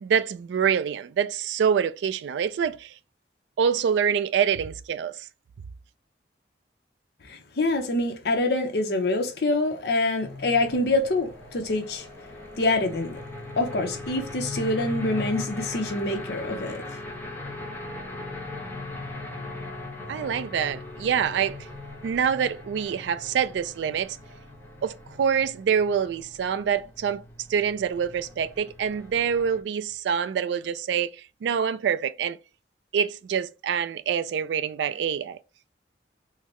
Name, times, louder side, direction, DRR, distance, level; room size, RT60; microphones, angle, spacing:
voice 1, 0.0-2.9 3.6-5.2 20.1-21.6 22.0-24.2 24.8-27.2 27.5-31.1 31.4-32.4 32.9-35.4, right 7 dB, 85° right, 0.3 m, -26 dB
voice 2, 7.3-12.1 12.6-13.2 13.6-16.8, left 2 dB, 65° left, 0.7 m, -26 dB
sound 1, 10.2-29.6, left 2 dB, 10° left, 0.5 m, -39 dB
3.8 x 2.0 x 3.0 m
head